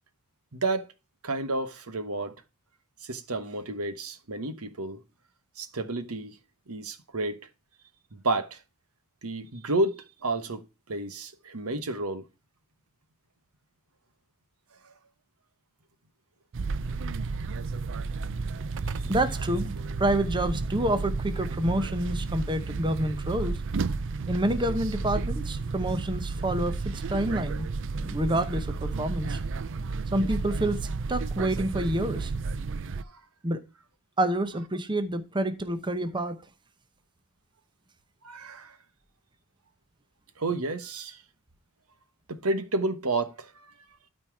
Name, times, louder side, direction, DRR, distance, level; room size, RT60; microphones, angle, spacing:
voice 1, 0.5-0.9 1.2-2.3 3.0-5.0 5.6-6.3 6.7-7.5 8.1-8.6 9.2-10.6 10.9-12.3 19.0-19.1 33.0-33.2 38.2-38.8 40.4-41.2 42.3-43.7, right 2 dB, 75° right, 1.2 m, -31 dB
sound 1, 16.5-33.0, right 4 dB, 55° right, 0.5 m, -32 dB
voice 2, 18.8-23.6 24.3-27.7 27.9-29.4 30.1-30.8 31.1-32.3 33.4-33.6 34.2-36.4, right 1 dB, 20° right, 0.8 m, -28 dB
12.5 x 4.4 x 4.6 m
head